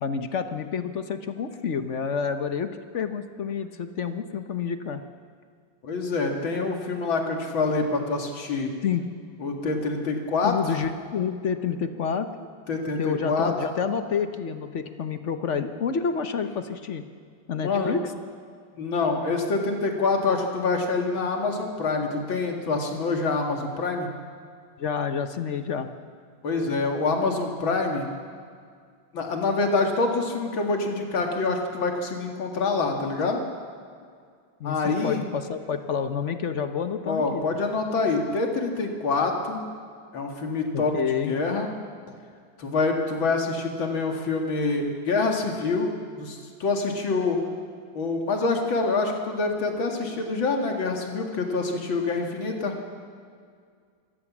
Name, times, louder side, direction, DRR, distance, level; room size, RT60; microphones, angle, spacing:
voice 1, 0.0-5.0 8.8-9.0 10.4-12.5 13.0-17.0 17.5-18.0 24.8-25.9 34.6-37.6 40.7-41.4, left 6 dB, 50° left, 9 dB, 1.0 m, -29 dB
voice 2, 5.8-8.7 9.4-10.5 12.7-13.5 17.6-17.9 18.8-24.1 26.4-28.1 29.1-33.4 34.6-35.2 37.1-39.6 40.1-40.9 41.2-41.7 42.6-45.9 46.1-47.4 47.9-52.7, left 3 dB, 75° left, 2 dB, 2.9 m, -26 dB
25.5 x 14.0 x 7.4 m, 2.1 s
omnidirectional pair, 2.2 m